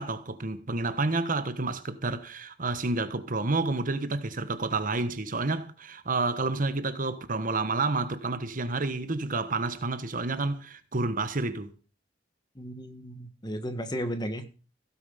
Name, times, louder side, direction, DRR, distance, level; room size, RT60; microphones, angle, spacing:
voice 1, 0.0-11.7, right 3 dB, 45° right, 1.2 m, -29 dB
voice 2, 12.5-14.5, equal, 25° left, 1.8 m, -34 dB
16.0 x 9.0 x 5.7 m
head